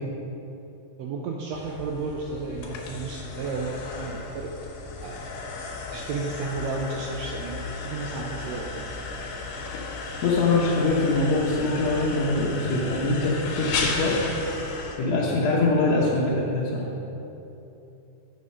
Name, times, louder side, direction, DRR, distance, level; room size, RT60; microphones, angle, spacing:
voice 1, 1.0-4.6 5.0-5.2 5.9-8.9, right 3 dB, 90° right, 0 dB, 1.5 m, -33 dB
sound 1, 1.5-15.0, left 4 dB, 80° left, 2.5 m, -35 dB
voice 2, 9.9-14.2 14.9-16.8, left 2 dB, 65° left, -5 dB, 1.8 m, -23 dB
8.6 x 6.2 x 5.5 m, 2.9 s
omnidirectional pair, 3.7 m